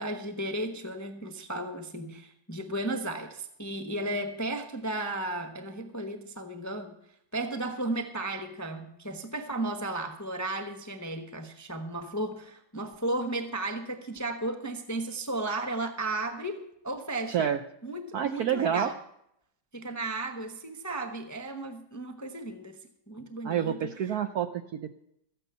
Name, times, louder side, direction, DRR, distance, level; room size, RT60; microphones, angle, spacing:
voice 1, 0.0-6.9 7.3-17.5 17.8-19.0 19.7-22.8 23.1-23.8, right 2 dB, 15° left, 6 dB, 0.6 m, -34 dB
voice 2, 17.3-17.6 18.1-18.9 23.4-24.9, right 9 dB, 70° right, 9 dB, 0.9 m, -28 dB
14.0 x 9.2 x 6.9 m, 0.76 s
omnidirectional pair, 2.2 m